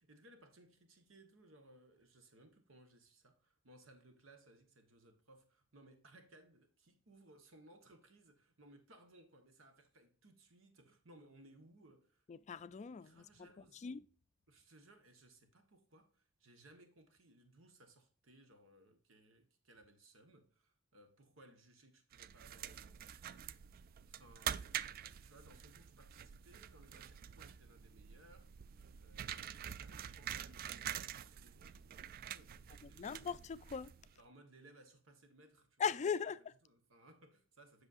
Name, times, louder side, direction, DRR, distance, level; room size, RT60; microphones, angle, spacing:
voice 1, 0.0-12.2 12.6-13.8 14.5-23.6 24.1-24.7 25.2-28.5 29.0-33.4 34.1-36.0 36.6-37.9, right 1 dB, 80° right, 1.2 m, -63 dB
voice 2, 12.3-13.5 13.8-14.0 32.8-33.9 35.8-36.5, left 6 dB, 35° left, 0.3 m, -39 dB
sound 1, 22.1-34.2, right 10 dB, 50° right, 0.3 m, -47 dB
8.0 x 6.2 x 2.5 m
head